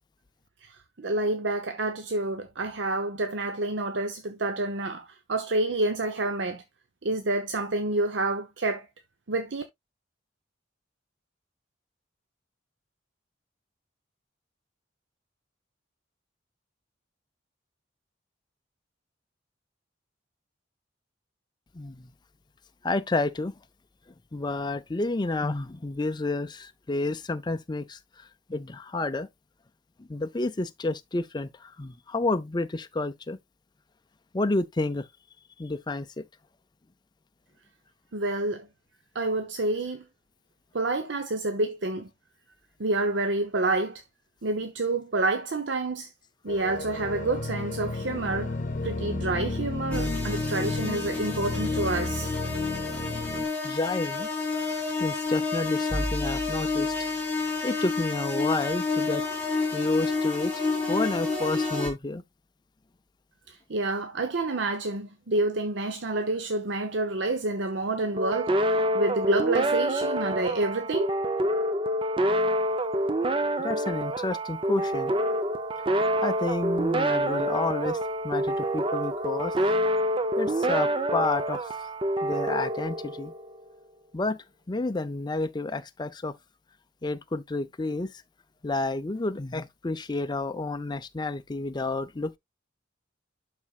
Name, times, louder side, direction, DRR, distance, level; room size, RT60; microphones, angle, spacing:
voice 1, 0.6-6.6 7.0-8.9 9.3-9.6 38.1-38.7 39.1-40.0 40.7-42.1 42.8-44.0 44.4-46.1 46.4-48.6 48.8-52.3 63.5-71.2, right 2 dB, 70° right, 0.8 m, -28 dB
voice 2, 21.7-22.1 22.8-23.5 24.3-28.0 28.5-29.3 30.0-33.4 34.3-35.1 35.6-36.3 53.6-54.3 54.7-56.9 57.6-59.2 59.7-60.5 60.9-62.2 73.6-75.1 76.2-78.0 78.2-79.5 80.4-81.7 82.2-83.3 84.1-86.3 87.0-88.1 88.6-92.4, left 2 dB, 25° left, 0.5 m, -30 dB
sound 1, 46.5-53.5, left 2 dB, 40° left, 1.2 m, -33 dB
sound 2, 49.9-61.9, left 3 dB, 5° left, 2.0 m, -29 dB
sound 3, 68.2-83.5, right 1 dB, 25° right, 0.6 m, -27 dB
12.0 x 4.2 x 2.4 m
head